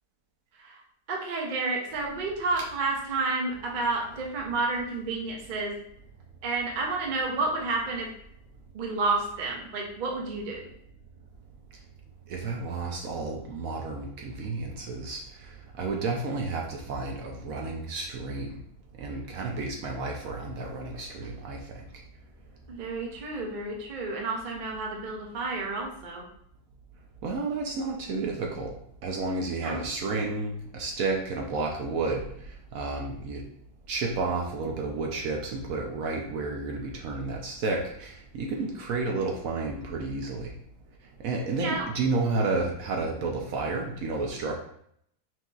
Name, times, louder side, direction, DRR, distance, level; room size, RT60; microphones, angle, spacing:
voice 1, 1.1-5.7 6.4-8.1 8.7-10.7 22.7-26.2 29.6-29.8 41.6-41.9, right 3 dB, 50° right, 0 dB, 0.5 m, -30 dB
voice 2, 12.3-15.2 15.8-18.5 19.0-21.8 27.2-28.7 29.0-32.3 32.7-33.4 33.9-40.5 41.2-44.6, right 3 dB, 65° right, 0 dB, 0.9 m, -31 dB
5.8 x 2.8 x 2.3 m, 0.68 s
omnidirectional pair, 1.8 m